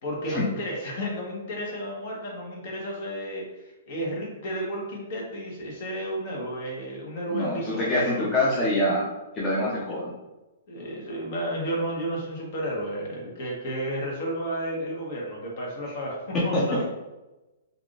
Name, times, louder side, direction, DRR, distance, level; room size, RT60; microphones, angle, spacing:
voice 1, 0.0-8.7 9.9-10.0 10.7-16.8, right 1 dB, 50° left, -2 dB, 1.1 m, -32 dB
voice 2, 7.3-9.0 9.3-10.1 16.3-16.8, left 1 dB, 15° left, -6 dB, 0.6 m, -25 dB
3.5 x 2.5 x 2.4 m, 1.0 s
hypercardioid pair, 150°, 0 cm